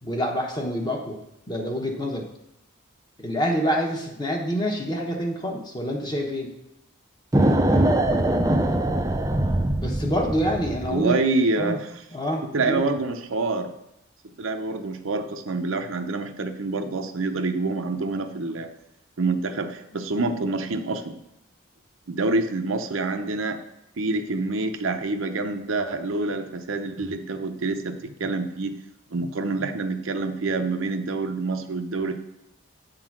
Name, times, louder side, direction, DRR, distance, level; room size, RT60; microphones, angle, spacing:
voice 1, 0.0-1.2 1.5-2.2 3.2-6.5 9.8-11.2 11.6-11.8 12.1-12.9, equal, 20° left, 1 dB, 1.0 m, -27 dB
sound 1, 7.3-11.0, right 1 dB, 15° right, 0.4 m, -22 dB
voice 2, 10.9-11.9 12.5-13.7 14.4-18.7 19.2-21.2 22.1-23.6 24.0-28.7 29.1-32.1, right 3 dB, 80° right, 6 dB, 0.7 m, -27 dB
8.1 x 3.9 x 6.1 m, 0.85 s
head